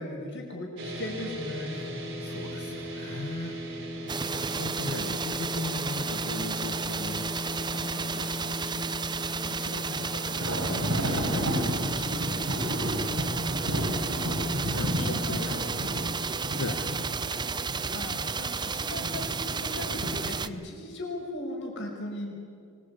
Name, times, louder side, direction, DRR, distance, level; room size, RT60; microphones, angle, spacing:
voice 1, 0.0-2.0 4.0-4.6 9.8-10.1 13.8-14.1 15.0-16.0 16.7-16.8 17.9-22.3, left 1 dB, 55° left, 1 dB, 5.6 m, -38 dB
sound 1, 0.8-17.1, left 2 dB, 55° right, 4.5 m, -38 dB
voice 2, 2.2-3.6 4.3-8.9 9.4-12.9 14.1-15.5 16.6-16.9, left 2 dB, 85° left, 3 dB, 1.6 m, -39 dB
sound 2, 4.1-20.5, right 5 dB, 20° right, 0.6 m, -33 dB
sound 3, 10.2-20.2, equal, 85° right, 6.3 m, -32 dB
24.5 x 21.5 x 8.7 m, 2.3 s
head